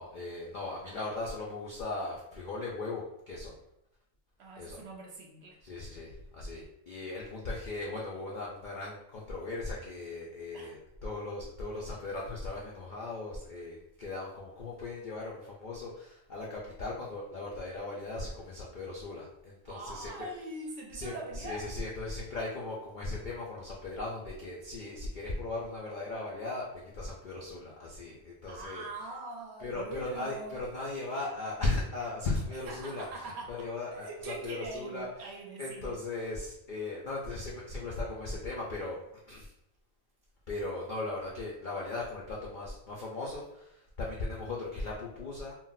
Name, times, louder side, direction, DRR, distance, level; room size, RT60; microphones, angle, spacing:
voice 1, 0.0-3.5 4.6-4.8 5.6-20.3 20.9-28.9 29.6-35.1 35.6-39.0 39.3-39.5 40.5-45.6, left 2 dB, 70° left, -4 dB, 0.4 m, -38 dB
voice 2, 4.4-5.6 10.5-10.8 19.7-21.8 28.5-30.6 32.7-36.0, right 2 dB, 65° right, 0 dB, 0.7 m, -43 dB
2.4 x 2.0 x 3.9 m, 0.81 s
omnidirectional pair, 1.4 m